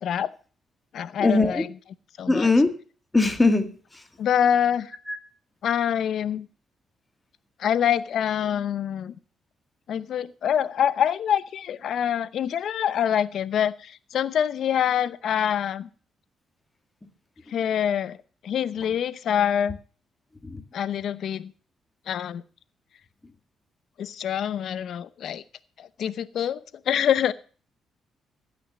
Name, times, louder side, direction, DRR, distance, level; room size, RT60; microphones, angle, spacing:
voice 1, 0.0-0.3 0.9-1.7 2.2-2.5 4.2-4.9 5.6-6.5 7.6-9.1 9.9-15.9 17.5-18.2 18.4-19.8 20.7-21.5 22.1-22.4 24.0-25.4 25.8-27.3, left 9 dB, 65° left, 16 dB, 0.8 m, -25 dB
voice 2, 1.2-1.7 2.3-2.7 3.1-3.7 5.1-5.2 20.4-20.6, left 3 dB, 15° left, 8 dB, 2.0 m, -20 dB
15.5 x 6.4 x 7.4 m, 0.40 s
cardioid pair, 90°, 0 cm